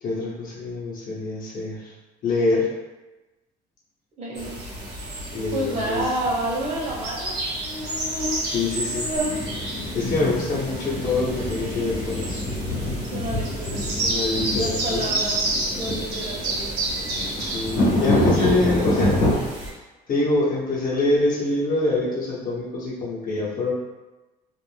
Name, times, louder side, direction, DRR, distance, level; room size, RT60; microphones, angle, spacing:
voice 1, 0.0-1.9 2.2-2.7 5.3-6.1 8.4-9.1 9.9-12.4 13.9-15.1 17.4-19.2 20.1-23.7, left 2 dB, 55° left, -6 dB, 0.8 m, -25 dB
voice 2, 4.2-4.6 5.5-7.3 13.1-13.8 14.6-15.4 15.8-16.7 18.4-18.9, right 1 dB, 45° right, -4 dB, 0.9 m, -29 dB
sound 1, 4.4-19.7, right 1 dB, 80° right, 0.9 m, -30 dB
sound 2, 9.2-19.3, left 1 dB, 90° left, 0.8 m, -26 dB
2.4 x 2.0 x 3.2 m, 1.1 s
cardioid pair, 110°, 17 cm